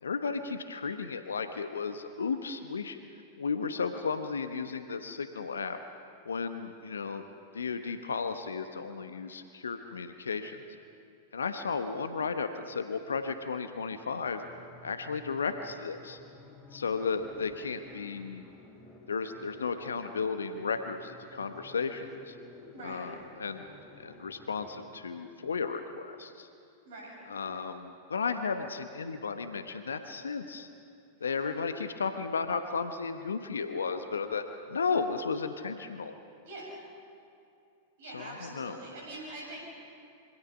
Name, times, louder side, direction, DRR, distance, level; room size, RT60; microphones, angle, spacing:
voice 1, 0.0-3.0 3.4-5.8 6.2-7.2 7.5-10.6 11.3-14.4 14.8-16.2 16.7-18.5 19.1-22.4 22.8-23.6 24.0-26.5 27.3-30.7 31.2-36.1 38.1-38.8, left 5 dB, 75° left, 8 dB, 1.1 m, -34 dB
sound 1, 13.6-25.0, left 2 dB, 25° left, 3.6 m, -54 dB
voice 2, 22.7-23.0 26.8-27.1 31.2-31.3 36.4-36.8 38.0-39.7, right 1 dB, 60° right, -2 dB, 7.5 m, -44 dB
26.0 x 25.0 x 5.7 m, 2.5 s
figure-of-eight pair, 95°, 0 cm